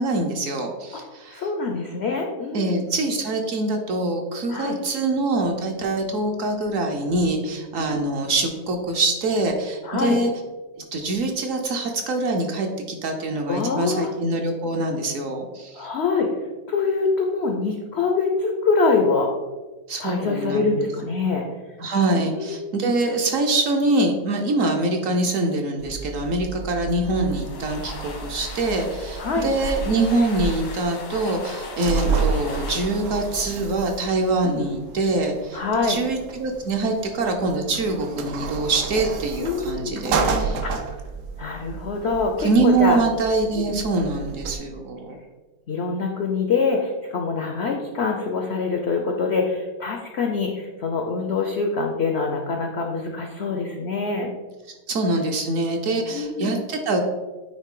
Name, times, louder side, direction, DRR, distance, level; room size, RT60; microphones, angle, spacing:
voice 1, 0.0-1.4 2.5-10.3 10.8-15.9 19.9-20.8 21.8-40.6 42.4-45.2 54.9-57.0, right 2 dB, 60° right, 3 dB, 0.9 m, -24 dB
voice 2, 1.0-2.9 4.5-4.8 7.8-8.0 9.8-10.2 13.5-14.1 15.7-16.3 16.7-19.3 20.0-21.4 22.1-22.9 29.2-29.5 34.4-34.6 35.5-36.0 39.4-40.0 40.6-40.9 41.4-43.0 43.5-43.8 45.7-54.3 56.1-56.5, left 4 dB, 70° left, 2 dB, 0.6 m, -25 dB
sound 1, 25.8-44.6, right 5 dB, 80° right, 1.3 m, -31 dB
sound 2, 27.1-34.5, left 3 dB, 85° left, 1.8 m, -39 dB
9.1 x 3.2 x 3.7 m, 1.3 s
omnidirectional pair, 1.8 m